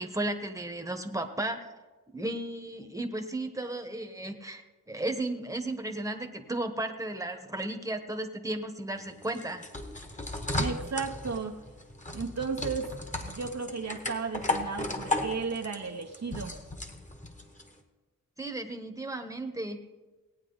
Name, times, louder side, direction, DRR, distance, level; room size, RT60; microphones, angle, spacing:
voice 1, 0.0-1.7 2.1-4.6 4.9-9.6 18.4-19.8, right 1 dB, 10° right, 6 dB, 1.2 m, -34 dB
sound 1, 8.9-17.7, left 2 dB, 20° left, 1.4 m, -35 dB
voice 2, 10.5-11.6 12.1-12.9 13.2-16.5, right 5 dB, 50° right, 4 dB, 0.8 m, -34 dB
18.0 x 8.8 x 3.9 m, 1.2 s
cardioid pair, 65°, 34 cm